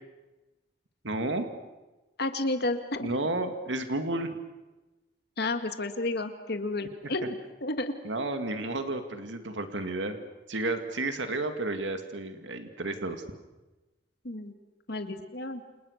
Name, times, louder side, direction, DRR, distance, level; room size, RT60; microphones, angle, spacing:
voice 1, 1.0-1.5 3.0-4.3 8.0-10.2 10.5-13.2, right 2 dB, 80° right, 7 dB, 2.3 m, -32 dB
voice 2, 2.2-3.1 5.4-7.3 7.6-7.9 14.2-14.5 14.9-15.6, left 2 dB, 60° left, 8 dB, 2.0 m, -31 dB
29.0 x 29.0 x 6.6 m, 1.1 s
head